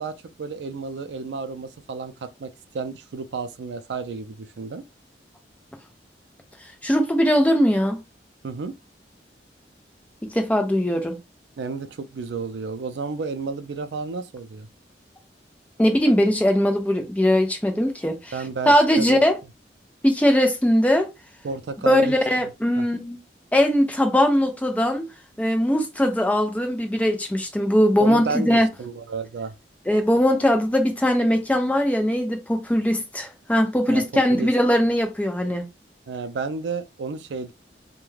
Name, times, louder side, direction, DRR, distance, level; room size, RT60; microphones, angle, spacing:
voice 1, 0.0-4.8 8.4-8.7 11.6-14.7 18.3-19.2 21.4-22.2 22.8-22.9 28.0-29.5 33.9-34.5 36.1-37.5, right 4 dB, 75° right, 0.4 m, -32 dB
voice 2, 6.8-8.0 10.2-11.2 15.8-18.3 18.7-19.3 20.0-21.1 21.8-23.2 23.5-25.1 25.4-28.7 29.9-35.6, equal, 10° left, 0.4 m, -20 dB
2.3 x 2.2 x 3.1 m
head